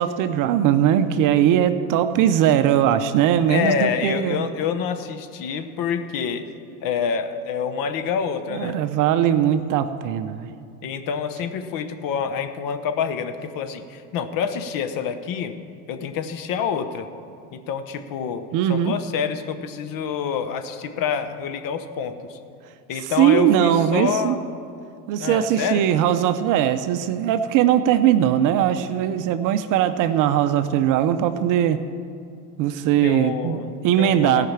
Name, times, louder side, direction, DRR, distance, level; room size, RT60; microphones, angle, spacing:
voice 1, 0.0-4.5 8.5-10.5 18.5-18.9 23.0-24.4 25.1-31.8 32.6-34.5, right 10 dB, 45° right, 10 dB, 0.6 m, -20 dB
voice 2, 3.5-6.5 6.8-8.8 10.8-15.5 15.9-17.1 17.5-22.4 22.9-24.4 25.2-25.9 33.0-34.5, left 7 dB, 45° left, 9 dB, 1.0 m, -27 dB
15.5 x 5.8 x 7.3 m, 2.5 s
hypercardioid pair, 90°, 47 cm